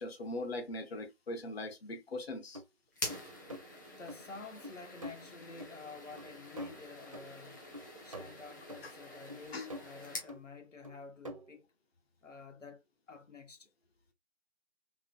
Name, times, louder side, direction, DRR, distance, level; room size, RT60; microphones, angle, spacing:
voice 1, 0.0-2.6 8.8-8.9 9.5-9.7, left 2 dB, 55° left, 1.0 m, -40 dB
sound 1, 2.5-2.6 3.1-3.6 4.1-4.2 4.6-5.2 5.6-5.7 6.2-6.3 6.6-7.4 7.7-8.9 9.3-10.0 10.3-10.4 10.8-11.6, equal, 30° right, 0.4 m, -46 dB
sound 2, 2.9-10.3, left 1 dB, 15° left, 0.6 m, -46 dB
voice 2, 4.0-7.6 8.0-11.7 12.2-13.7, left 4 dB, 85° left, 1.0 m, -50 dB
3.8 x 3.0 x 2.2 m
figure-of-eight pair, 145°, 36 cm